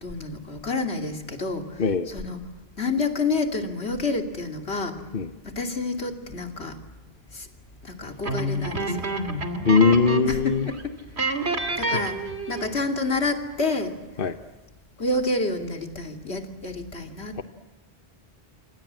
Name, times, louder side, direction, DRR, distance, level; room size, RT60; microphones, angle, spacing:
voice 1, 0.0-2.4 2.8-5.0 5.4-6.8 7.3-7.5 7.8-9.1 10.3-10.9 11.3-13.9 15.0-17.4, left 3 dB, 80° left, 4 dB, 3.1 m, -29 dB
sound 1, 8.2-10.4 10.7-10.8 11.2-12.8, right 2 dB, 85° right, 2.9 m, -28 dB
voice 2, 9.6-10.7 14.2-14.3 17.4-17.5, left 5 dB, 55° left, 8 dB, 1.2 m, -20 dB
28.0 x 26.5 x 7.6 m, 1.1 s
omnidirectional pair, 1.1 m